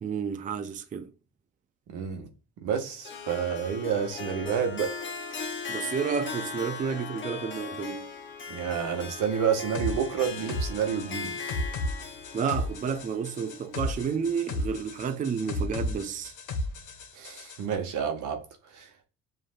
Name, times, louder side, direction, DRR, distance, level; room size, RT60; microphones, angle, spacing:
voice 1, 0.0-1.1 5.7-8.1 12.3-16.3, right 6 dB, 25° right, 0.4 m, -31 dB
voice 2, 1.9-2.3 2.6-4.9 8.5-11.4 17.1-18.4 18.7-18.9, right 7 dB, 85° right, 1.0 m, -29 dB
Harp, 3.0-14.3, left 5 dB, 40° left, 0.9 m, -39 dB
sound 1, 9.7-17.6, left 1 dB, 80° left, 0.9 m, -34 dB
7.4 x 2.6 x 2.4 m
cardioid pair, 90°, 30 cm